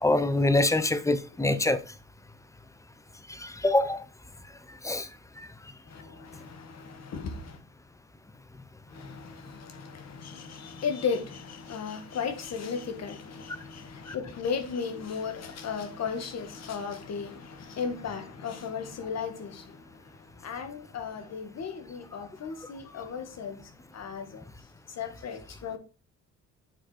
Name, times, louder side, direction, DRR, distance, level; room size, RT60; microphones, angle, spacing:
voice 1, 0.0-1.8 3.3-4.1 4.7-5.1 5.4-5.5 14.1-14.2, left 2 dB, 10° left, 0.8 m, -25 dB
voice 2, 5.9-7.6 8.9-19.9 20.4-23.6 23.9-24.4 25.0-25.8, left 6 dB, 60° left, 1.8 m, -35 dB
8.9 x 4.8 x 4.4 m
cardioid pair, 90°, 30 cm